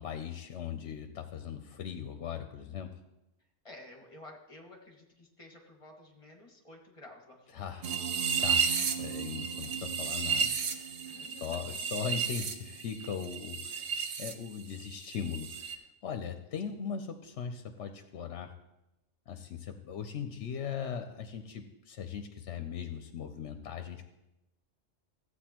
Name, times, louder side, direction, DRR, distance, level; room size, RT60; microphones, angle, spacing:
voice 1, 0.0-3.0 7.5-7.9 8.4-8.7 9.0-11.0 11.4-18.5 19.3-24.1, left 7 dB, 75° left, 7 dB, 0.9 m, -39 dB
voice 2, 3.6-7.4 11.0-11.9, left 2 dB, 25° left, 1 dB, 1.5 m, -52 dB
sound 1, 7.8-14.3 14.6-15.8, right 6 dB, 70° right, 1.0 m, -33 dB
14.5 x 8.2 x 2.9 m, 0.94 s
omnidirectional pair, 1.2 m